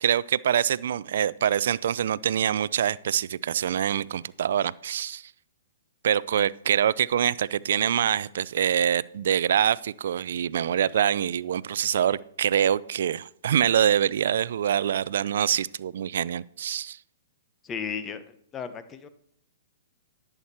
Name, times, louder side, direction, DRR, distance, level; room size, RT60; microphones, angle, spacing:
voice 1, 0.0-5.3 6.0-17.0, right 9 dB, 65° right, 0.4 m, -25 dB
voice 2, 17.6-18.2 18.5-19.1, left 6 dB, 20° left, 1.0 m, -34 dB
11.0 x 8.0 x 4.3 m
hypercardioid pair, 130°, 0 cm